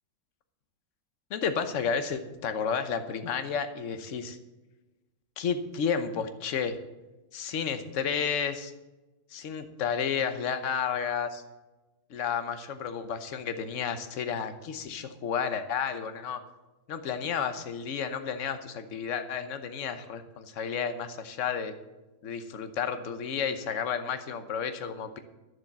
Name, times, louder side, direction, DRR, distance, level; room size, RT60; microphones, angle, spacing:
voice 1, 1.3-4.4 5.4-6.8 7.3-8.7 9.3-11.4 12.1-16.4 16.9-21.7 22.2-25.2, left 7 dB, 55° left, 9 dB, 0.8 m, -31 dB
10.5 x 7.7 x 7.3 m, 1.1 s
omnidirectional pair, 2.3 m